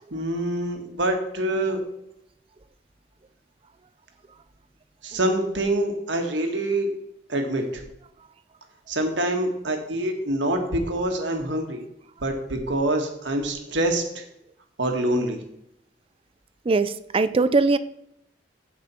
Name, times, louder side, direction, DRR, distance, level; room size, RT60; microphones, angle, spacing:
voice 1, 0.1-1.8 5.0-6.9 7.3-7.8 8.9-11.8 12.2-14.2 14.8-15.4, right 1 dB, 70° right, 4 dB, 1.7 m, -25 dB
voice 2, 16.7-17.8, right 3 dB, 30° right, 14 dB, 0.4 m, -20 dB
15.0 x 5.5 x 4.4 m, 0.78 s
head